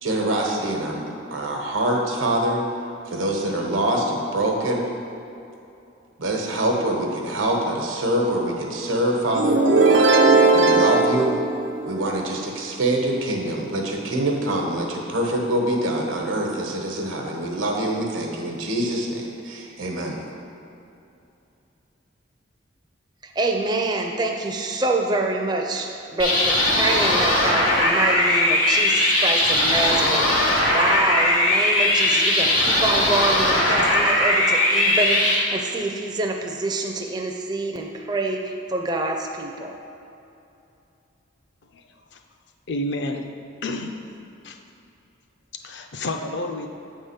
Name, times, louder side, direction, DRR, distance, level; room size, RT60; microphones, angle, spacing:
voice 1, 0.0-2.6 3.1-4.9 6.2-9.6 10.5-11.4 11.9-20.2, right 1 dB, 85° right, 0 dB, 1.1 m, -25 dB
sound 1, 9.4-12.2, right 3 dB, 70° right, 0.6 m, -17 dB
voice 2, 23.2-39.8, right 2 dB, 20° right, 2 dB, 0.4 m, -26 dB
sound 2, 26.2-35.3, left 1 dB, 85° left, 1.6 m, -19 dB
voice 3, 42.7-43.2 43.6-44.0 44.4-44.6 45.6-46.7, left 1 dB, 60° left, 4 dB, 0.5 m, -29 dB
7.9 x 3.6 x 5.6 m, 2.7 s
head